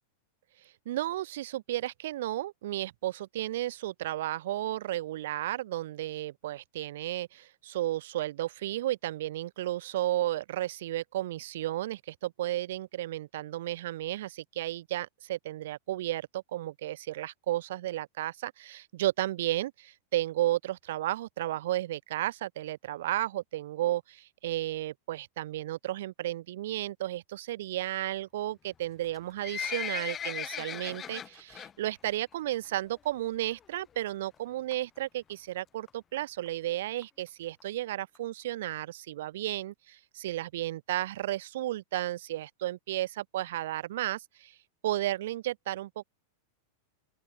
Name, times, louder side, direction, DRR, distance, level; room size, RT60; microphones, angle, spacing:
voice 1, 0.8-44.5 44.8-46.0, right 14 dB, 65° right, 4.6 m, -33 dB
Livestock farm animals working animals, 29.0-31.7 32.1-32.3 32.6-32.7 33.4-33.5 33.8-33.9 34.1-34.2 34.7-35.0 35.6-35.7 35.9-36.0 36.1-36.2 36.5-36.6 37.0-37.1 37.6-37.7 38.1-38.2, left 8 dB, 15° left, 2.8 m, -37 dB
open air
supercardioid pair, 175°, 0 cm